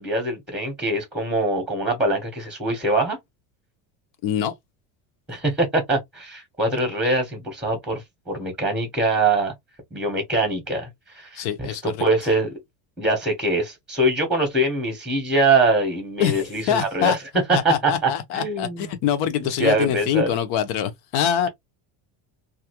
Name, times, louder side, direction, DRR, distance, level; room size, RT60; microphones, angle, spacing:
voice 1, 0.0-3.2 5.3-9.5 9.9-10.9 11.1-12.5 13.0-17.2 17.6-17.9 18.3-18.9 19.6-20.3, right 2 dB, ahead, 0.9 m, -23 dB
voice 2, 4.2-4.5 11.3-11.8 16.2-17.2 17.5-21.5, left 9 dB, 65° left, 0.8 m, -24 dB
2.8 x 2.4 x 2.9 m
cardioid pair, 145°, 42 cm